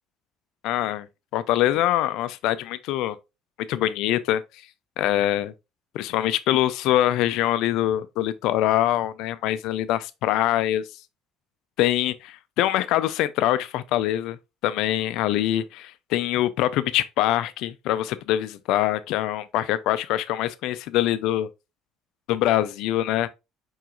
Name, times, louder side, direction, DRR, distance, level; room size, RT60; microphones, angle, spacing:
voice 1, 0.6-1.1 1.3-3.2 3.7-4.4 5.0-5.5 5.9-10.8 11.8-14.4 14.6-21.5 22.3-23.3, left 13 dB, 65° left, 0.4 m, -24 dB
4.7 x 4.6 x 2.3 m
figure-of-eight pair, 55°, 0 cm